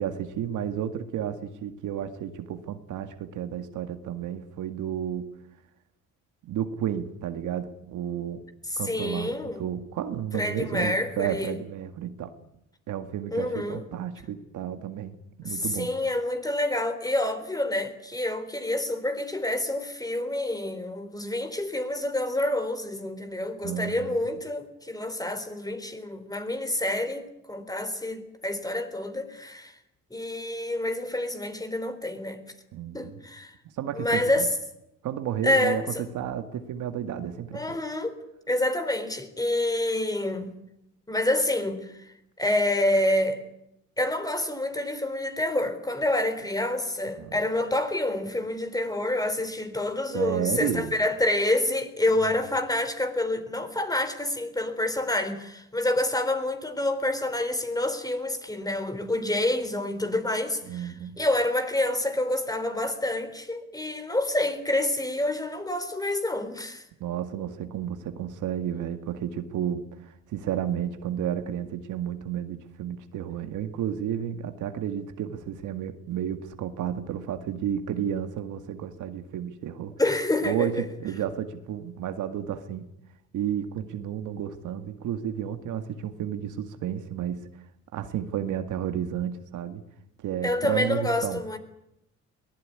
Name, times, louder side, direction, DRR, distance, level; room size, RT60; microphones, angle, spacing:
voice 1, 0.0-5.3 6.4-8.4 8.8-12.3 12.9-15.9 23.6-24.2 32.7-33.2 33.8-34.5 35.0-35.8 36.1-37.6 47.2-47.3 50.1-50.9 60.7-61.2 67.0-79.9 80.4-82.9 83.3-87.4 87.9-89.8 90.2-91.4, right 9 dB, 80° right, 2.0 m, -32 dB
voice 2, 8.7-9.6 10.3-11.6 13.3-13.8 15.4-29.8 30.1-32.4 32.9-33.5 33.9-34.5 35.4-36.0 37.5-38.2 38.5-40.5 41.1-43.4 44.0-66.9 80.0-80.8 90.4-91.6, left 1 dB, 10° left, 3.9 m, -28 dB
22.5 x 19.0 x 9.7 m
cardioid pair, 90°, 30 cm